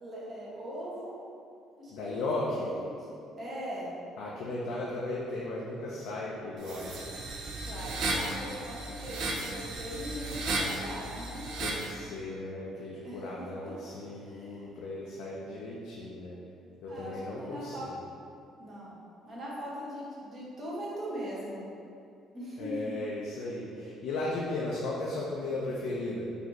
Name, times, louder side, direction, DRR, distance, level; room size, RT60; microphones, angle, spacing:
voice 1, 0.0-1.2 1.8-3.9 7.6-11.5 13.0-13.8 14.2-14.6 16.9-17.9 18.6-18.9 19.2-21.6 22.3-22.9, equal, 35° right, -7 dB, 1.1 m, -40 dB
voice 2, 1.9-2.7 4.2-6.9 11.6-16.4 16.8-17.9 22.6-26.2, left 2 dB, 80° left, -5 dB, 0.5 m, -36 dB
sound 1, 6.6-11.9, right 2 dB, 70° right, 0.6 m, -34 dB
4.1 x 2.7 x 3.0 m, 2.5 s
cardioid pair, 120°, 0 cm